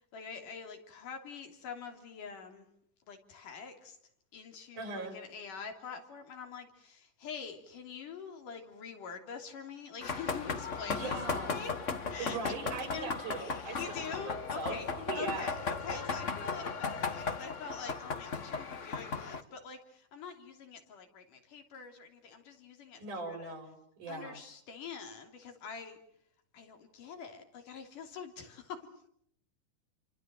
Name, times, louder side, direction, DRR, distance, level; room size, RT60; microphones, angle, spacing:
voice 1, 0.1-2.7 3.1-4.0 4.3-11.7 12.1-13.1 13.8-14.9 15.1-23.5 24.1-26.0 26.5-28.9, left 6 dB, 85° left, 4 dB, 4.7 m, -45 dB
voice 2, 4.7-5.1 10.9-11.5 12.2-14.8 15.1-15.5 15.8-16.1 23.0-24.4, right 3 dB, 75° right, 6 dB, 6.3 m, -40 dB
sound 1, 10.0-19.4, left 4 dB, 40° left, 1.1 m, -36 dB
29.0 x 25.0 x 7.6 m, 0.71 s
omnidirectional pair, 3.6 m